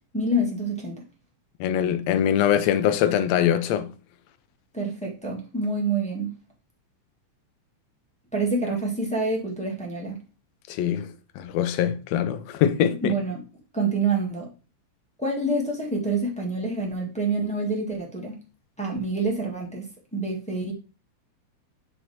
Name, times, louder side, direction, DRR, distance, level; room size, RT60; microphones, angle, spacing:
voice 1, 0.1-1.0 4.7-6.3 8.3-10.2 13.0-13.4 13.7-14.5 15.2-18.3 18.8-20.7, right 2 dB, 5° left, 0.8 m, -27 dB
voice 2, 1.6-3.9 10.7-11.1 11.4-13.1, left 10 dB, 75° left, 1.8 m, -23 dB
9.2 x 3.4 x 4.2 m
omnidirectional pair, 3.3 m